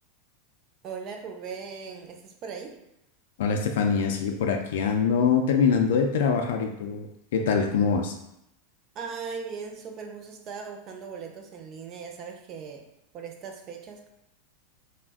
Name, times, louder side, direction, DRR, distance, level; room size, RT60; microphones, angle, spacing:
voice 1, 0.8-2.7 8.9-12.8 13.1-14.1, right 5 dB, 25° right, 3 dB, 0.3 m, -39 dB
voice 2, 3.4-7.1 7.3-8.1, left 6 dB, 75° left, 4 dB, 0.3 m, -24 dB
2.4 x 2.1 x 3.4 m, 0.84 s
supercardioid pair, 175°, 0 cm